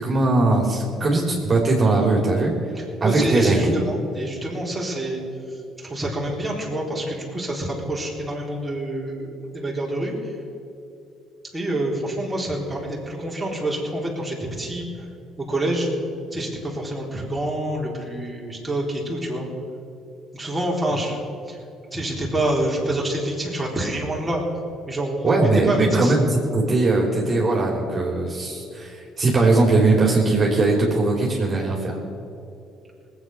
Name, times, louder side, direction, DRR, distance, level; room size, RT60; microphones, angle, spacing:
voice 1, 0.0-2.5 3.0-3.7 25.2-32.0, right 2 dB, 35° right, -1 dB, 3.3 m, -20 dB
voice 2, 3.0-5.2 5.8-10.1 11.5-14.9 15.4-15.9 16.3-19.5 20.3-21.2 21.5-21.6 21.9-24.4 24.9-26.1, right 1 dB, 10° right, -4 dB, 4.0 m, -27 dB
19.0 x 8.6 x 6.1 m, 2.7 s
supercardioid pair, 70°, 0 cm